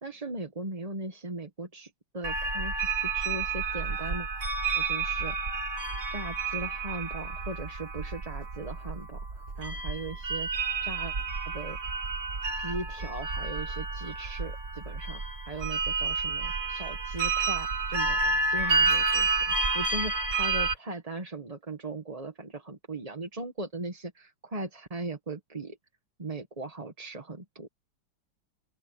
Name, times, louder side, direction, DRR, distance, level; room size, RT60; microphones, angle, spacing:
voice 1, 0.0-4.3 4.7-5.5 6.1-11.1 11.4-12.0 12.5-25.8 26.2-27.7, right 2 dB, 20° right, 1.4 m, -39 dB
sound 1, 2.2-20.7, right 4 dB, 40° right, 2.1 m, -30 dB
open air
omnidirectional pair, 2.2 m